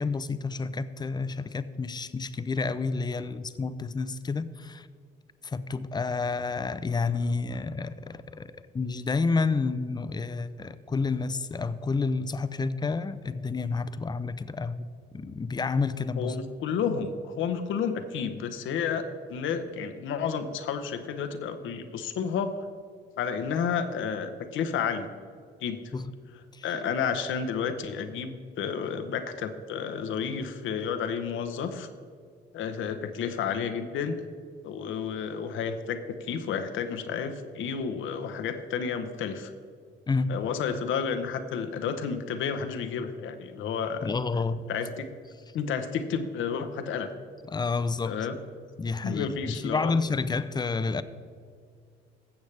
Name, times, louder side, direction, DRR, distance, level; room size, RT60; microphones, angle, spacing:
voice 1, 0.0-4.9 5.4-8.5 8.7-16.4 25.9-26.1 26.5-26.7 40.1-40.3 44.0-44.7 47.5-48.2 48.8-51.0, left 4 dB, 20° left, 13 dB, 0.5 m, -29 dB
voice 2, 16.2-19.0 19.3-22.5 23.2-25.1 25.6-25.8 26.6-31.9 32.5-34.2 34.6-39.5 40.3-44.1 44.7-45.1 45.5-47.1 48.1-48.3 49.0-49.9, left 6 dB, 80° left, 8 dB, 0.9 m, -31 dB
16.0 x 7.0 x 3.3 m, 2.1 s
cardioid pair, 90°, 20 cm